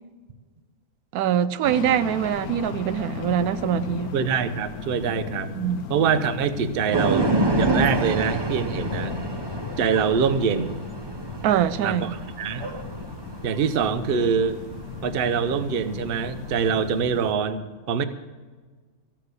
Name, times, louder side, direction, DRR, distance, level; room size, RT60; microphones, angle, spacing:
voice 1, 1.1-4.1 5.5-5.8 11.4-12.1, right 9 dB, 90° right, 1.1 m, -23 dB
sound 1, 1.6-17.3, left 5 dB, 85° left, 1.2 m, -37 dB
voice 2, 4.1-5.5 5.9-9.2 9.8-10.8 11.8-12.1 12.4-12.7 13.4-14.6 15.0-18.0, right 6 dB, 50° right, 0.8 m, -24 dB
sound 2, 6.9-16.8, right 2 dB, 35° right, 0.4 m, -28 dB
14.5 x 7.5 x 8.1 m
omnidirectional pair, 1.5 m